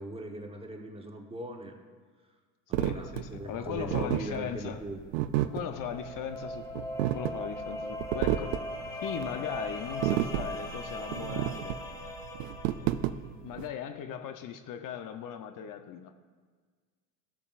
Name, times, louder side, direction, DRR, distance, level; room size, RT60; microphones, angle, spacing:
voice 1, 0.0-1.7 2.7-5.0, right 1 dB, 15° right, 3 dB, 1.1 m, -40 dB
sound 1, 2.7-13.7, right 13 dB, 80° right, 0.5 m, -32 dB
voice 2, 2.8-4.8 5.5-8.6 9.0-11.8 13.4-16.1, left 8 dB, 50° left, 8 dB, 0.7 m, -38 dB
sound 2, 5.4-13.2, left 1 dB, 10° left, 1.2 m, -39 dB
14.0 x 6.8 x 2.5 m, 1.5 s
supercardioid pair, 85°, 41 cm